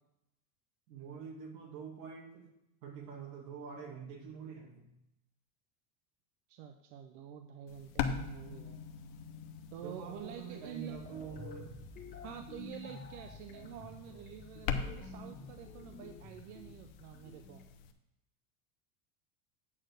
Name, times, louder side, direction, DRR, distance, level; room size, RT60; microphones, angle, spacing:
voice 1, 0.9-2.5 2.8-4.8 9.8-11.7, right 6 dB, 80° right, 2 dB, 2.1 m, -46 dB
voice 2, 6.5-8.9 9.7-11.0 12.2-17.6, right 9 dB, 60° right, 6 dB, 0.7 m, -48 dB
sound 1, 7.7-17.9, left 7 dB, 45° left, 0.8 m, -43 dB
sound 2, 10.9-17.6, left 3 dB, 15° left, 1.3 m, -50 dB
8.5 x 4.4 x 6.4 m, 0.87 s
supercardioid pair, 155°, 48 cm